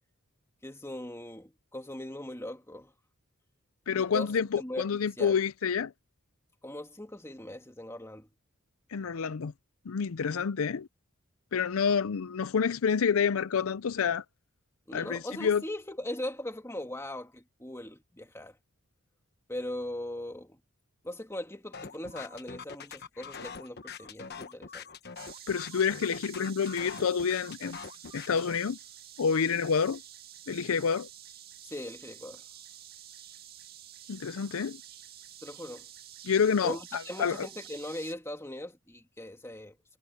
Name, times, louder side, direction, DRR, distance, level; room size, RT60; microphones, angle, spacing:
voice 1, 0.6-2.9 4.0-5.4 6.6-8.3 10.2-10.4 14.9-18.6 19.5-20.6 21.0-24.9 31.6-32.4 35.4-35.9 36.6-40.0, left 1 dB, 10° left, 2.4 m, -40 dB
voice 2, 3.9-5.9 8.9-9.5 9.9-10.9 11.5-14.2 14.9-15.6 25.5-27.8 28.1-28.8 29.2-30.0 30.5-31.1 34.1-34.8 36.2-37.5, left 6 dB, 75° left, 0.5 m, -28 dB
sound 1, 21.7-28.6, left 5 dB, 50° left, 1.3 m, -44 dB
sound 2, 25.2-38.1, right 11 dB, 45° right, 2.1 m, -49 dB
head